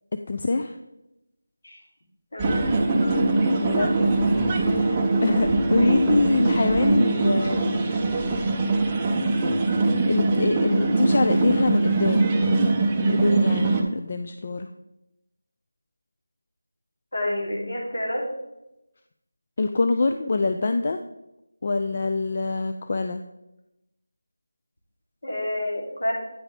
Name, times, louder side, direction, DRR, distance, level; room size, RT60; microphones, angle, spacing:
voice 1, 0.3-0.8 3.6-7.8 10.1-12.7 13.0-14.7 19.6-21.0 21.6-23.2, left 3 dB, 30° left, 7 dB, 0.4 m, -25 dB
voice 2, 2.3-3.2 17.1-18.2 25.2-26.2, left 1 dB, 60° left, -1 dB, 2.7 m, -29 dB
sound 1, 2.4-13.8, right 3 dB, 10° right, 0.6 m, -22 dB
9.3 x 5.0 x 5.0 m, 0.90 s
figure-of-eight pair, 175°, 0 cm